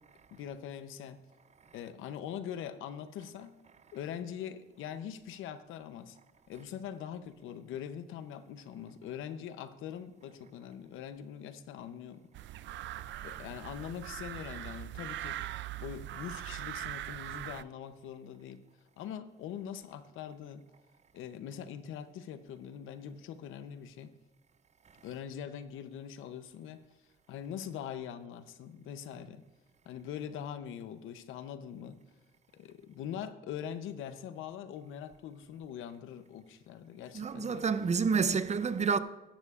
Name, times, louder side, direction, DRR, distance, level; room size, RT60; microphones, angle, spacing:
voice 1, 0.3-1.2 1.7-3.5 3.9-6.2 6.5-12.3 13.2-15.4 15.8-18.6 19.0-20.6 21.1-24.1 25.0-26.8 27.3-29.4 29.9-32.0 32.5-37.6, left 9 dB, 85° left, 0.8 m, -42 dB
sound 1, 12.3-17.6, right 14 dB, 70° right, 0.4 m, -41 dB
voice 2, 37.1-39.0, right 5 dB, 35° right, 0.6 m, -29 dB
15.0 x 11.5 x 2.5 m
cardioid pair, 90°, 20 cm